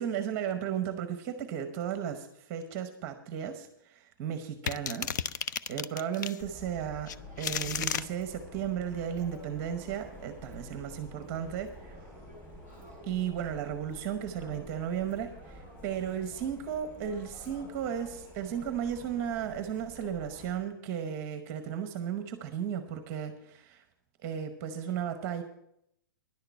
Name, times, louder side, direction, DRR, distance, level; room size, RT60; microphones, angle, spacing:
voice 1, 0.0-7.1 7.4-12.0 13.0-23.8 24.2-25.4, right 8 dB, 20° right, 8 dB, 0.8 m, -35 dB
sound 1, 4.7-6.4 7.1-8.1, left 8 dB, 55° left, 0.4 m, -33 dB
Subway metro underground, 6.4-20.7, equal, 15° left, 3.6 m, -49 dB
11.0 x 6.6 x 8.2 m, 0.74 s
hypercardioid pair, 175°, 12 cm